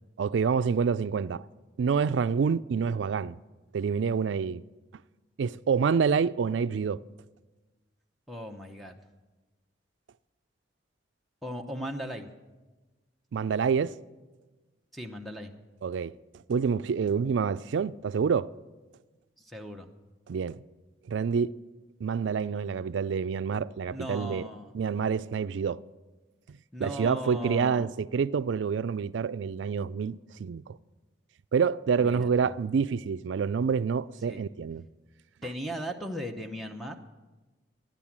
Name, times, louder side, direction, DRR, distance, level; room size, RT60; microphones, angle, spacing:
voice 1, 0.2-1.4 1.8-3.4 3.7-4.6 5.4-7.0 13.3-14.0 15.8-16.2 16.5-18.5 20.3-20.6 21.1-21.5 22.0-24.5 24.7-25.8 26.8-30.8 31.5-34.8, right 6 dB, 75° right, 0.4 m, -27 dB
voice 2, 8.3-9.0 11.4-12.3 14.9-15.5 19.4-19.9 23.9-24.7 26.7-27.9 32.0-32.5 34.3-34.4 35.4-37.0, equal, ahead, 0.8 m, -37 dB
14.0 x 10.5 x 7.3 m
head